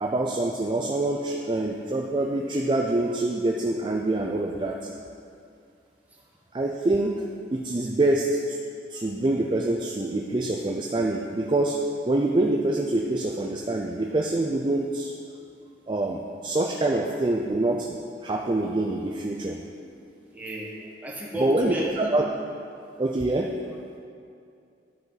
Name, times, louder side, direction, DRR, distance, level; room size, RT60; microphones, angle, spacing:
voice 1, 0.0-4.9 6.5-8.6 8.9-15.1 15.9-18.0 18.2-19.6 21.3-22.3 23.0-23.6, right 2 dB, 25° right, 1 dB, 0.4 m, -25 dB
voice 2, 20.3-20.7 21.0-22.1, equal, 10° right, -4 dB, 1.3 m, -32 dB
13.0 x 5.0 x 4.0 m, 2.5 s
head